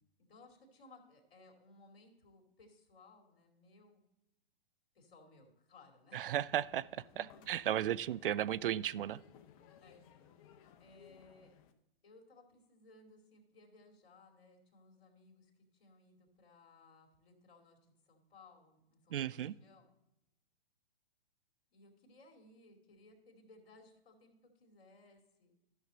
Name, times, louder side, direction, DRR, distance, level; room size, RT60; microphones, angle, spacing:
voice 1, 0.3-4.0 4.9-6.2 7.1-7.5 8.2-8.3 9.8-10.3 10.8-11.6 12.0-19.9 21.7-25.5, left 2 dB, 60° left, 2.6 m, -62 dB
voice 2, 6.1-7.0 7.5-9.2 19.1-19.5, right 11 dB, 65° right, 0.4 m, -35 dB
sound 1, 6.2-11.7, left 8 dB, 35° left, 0.9 m, -61 dB
12.5 x 6.5 x 3.9 m
hypercardioid pair, 125°, 30 cm